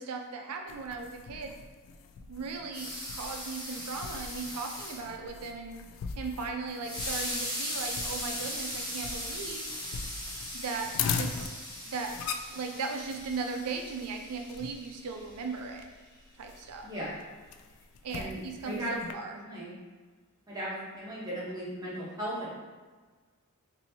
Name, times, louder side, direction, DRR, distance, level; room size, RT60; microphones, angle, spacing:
voice 1, 0.0-1.6 2.3-5.8 6.2-9.7 10.5-10.9 11.2-11.5 11.8-12.2 12.5-15.9 16.4-16.9 18.0-19.3, right 4 dB, 90° right, 4 dB, 0.5 m, -37 dB
sound 1, 0.7-19.1, left 6 dB, 90° left, 0.3 m, -41 dB
sound 2, 2.7-5.0 6.8-15.2, left 1 dB, 20° left, 0.9 m, -38 dB
voice 2, 16.8-17.2 18.1-19.0 19.3-19.7 20.5-22.6, equal, 20° right, -8 dB, 1.0 m, -37 dB
4.1 x 2.7 x 2.7 m, 1.4 s
head